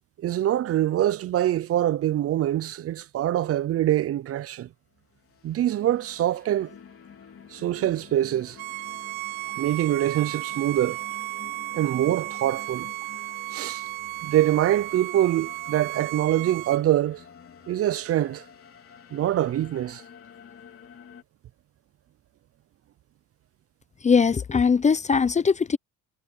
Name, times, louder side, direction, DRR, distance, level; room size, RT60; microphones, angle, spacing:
voice 1, 0.2-4.7 5.4-6.7 7.5-8.6 9.6-11.0 11.7-12.9 13.5-13.8 14.2-17.2 17.7-18.4 19.1-20.0, right 12 dB, 40° right, 0.5 m, -24 dB
sound 1, 5.0-21.2, left 7 dB, 40° left, 3.9 m, -49 dB
Bowed string instrument, 8.6-16.8, right 23 dB, 90° right, 0.9 m, -34 dB
voice 2, 24.0-25.8, left 5 dB, 20° left, 0.5 m, -20 dB
cardioid pair, 115°, 36 cm